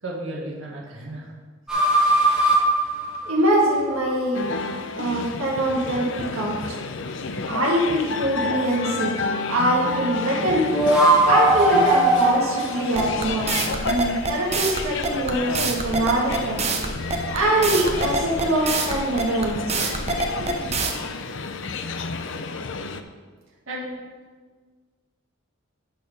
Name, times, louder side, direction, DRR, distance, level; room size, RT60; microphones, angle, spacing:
voice 1, 0.0-1.3 23.7-23.9, right 1 dB, 65° right, -3 dB, 1.8 m, -33 dB
sound 1, 1.7-4.0 10.5-13.9, right 2 dB, 5° right, 1.7 m, -20 dB
voice 2, 3.2-4.5 4.9-6.8 7.5-9.2 9.5-10.7 11.3-16.6 17.3-19.9 20.4-20.6, right 1 dB, 85° right, -3 dB, 1.6 m, -23 dB
sound 2, 4.3-23.0, left 4 dB, 60° left, 0.5 m, -31 dB
sound 3, 12.9-20.9, right 4 dB, 30° right, 0.8 m, -25 dB
11.5 x 4.5 x 5.3 m, 1.5 s
head